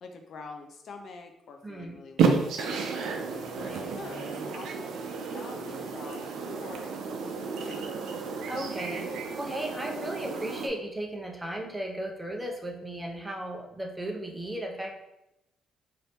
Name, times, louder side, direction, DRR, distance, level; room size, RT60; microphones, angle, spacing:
voice 1, 0.0-3.2 3.5-7.9, left 4 dB, 60° left, 5 dB, 0.4 m, -46 dB
voice 2, 1.6-2.0 3.6-3.9 8.4-14.9, right 1 dB, 10° right, 1 dB, 0.7 m, -36 dB
sound 1, 2.2-10.7, right 5 dB, 80° right, 0.4 m, -31 dB
2.7 x 2.6 x 3.4 m, 0.88 s
cardioid pair, 90°, 0 cm